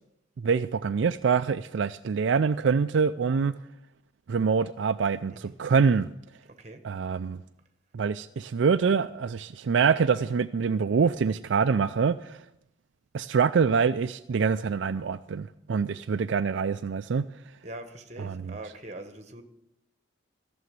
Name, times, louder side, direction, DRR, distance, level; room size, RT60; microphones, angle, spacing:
voice 1, 0.4-3.5 4.3-6.1 6.8-7.4 7.9-12.4 13.1-17.3 18.2-18.5, right 5 dB, 70° right, 0.4 m, -25 dB
voice 2, 6.5-6.8 10.1-10.4 17.6-19.4, right 1 dB, 35° right, 1.2 m, -43 dB
14.5 x 7.0 x 9.4 m
head